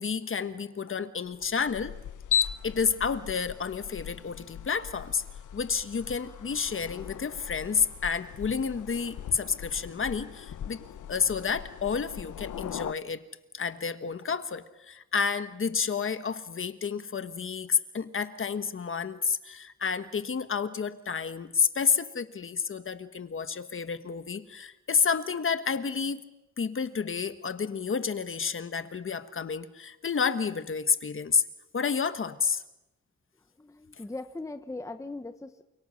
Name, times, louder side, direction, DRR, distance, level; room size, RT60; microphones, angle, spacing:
voice 1, 0.0-1.9 2.6-5.2 5.5-10.8 11.1-13.2 13.5-26.2 26.6-31.4 31.7-32.6, left 6 dB, 45° left, 11 dB, 1.3 m, -30 dB
sound 1, 1.3-12.9, left 9 dB, 85° left, 0.8 m, -37 dB
voice 2, 33.6-35.6, left 2 dB, 10° left, 9 dB, 0.9 m, -39 dB
29.0 x 25.5 x 6.4 m, 0.97 s
wide cardioid pair, 165°, 30 cm